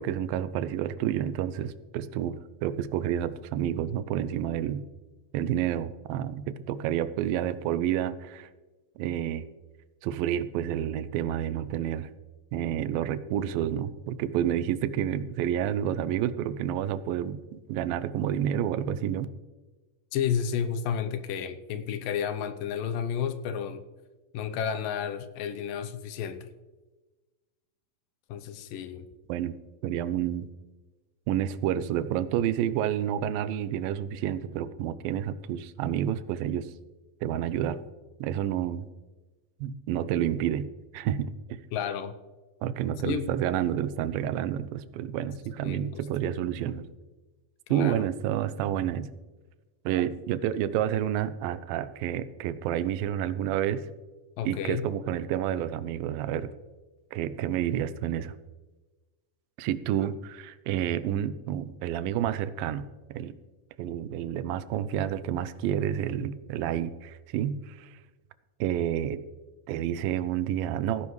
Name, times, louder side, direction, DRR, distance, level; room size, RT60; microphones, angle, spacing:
voice 1, 0.0-4.9 5.3-8.5 9.0-9.4 10.0-12.1 12.5-19.3 29.3-29.6 29.8-30.5 31.3-36.7 37.2-37.8 38.2-38.9 39.6-41.6 42.6-46.9 47.7-49.1 49.9-53.8 54.5-56.5 57.1-58.4 59.6-63.3 63.8-68.0 68.6-69.2 69.7-71.1, right 10 dB, 90° right, 15 dB, 2.4 m, -29 dB
voice 2, 20.1-23.8 24.3-26.5 28.3-29.1 41.7-42.1 43.0-43.3 45.6-45.8 47.7-48.1 50.4-50.5 54.4-54.8, left 8 dB, 80° left, 10 dB, 2.3 m, -31 dB
16.5 x 10.0 x 3.1 m, 1.2 s
omnidirectional pair, 4.0 m